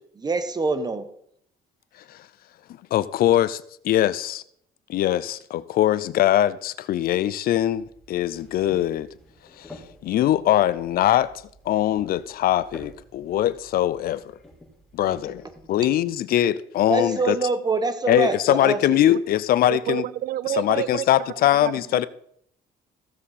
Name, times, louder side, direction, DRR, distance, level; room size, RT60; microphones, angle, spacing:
voice 1, 0.2-1.1 15.1-15.2 16.9-19.1, right 3 dB, 25° right, 1.2 m, -25 dB
voice 2, 2.9-4.4 4.9-9.1 9.6-11.3 11.7-14.2 14.9-15.4 15.7-17.4 18.1-20.0 20.6-22.1, left 12 dB, 60° left, 0.5 m, -22 dB
sound 1, 7.5-15.6, left 1 dB, 5° left, 3.4 m, -49 dB
voice 3, 19.7-22.1, right 12 dB, 60° right, 0.5 m, -30 dB
15.5 x 7.4 x 4.2 m
cardioid pair, 110°, 17 cm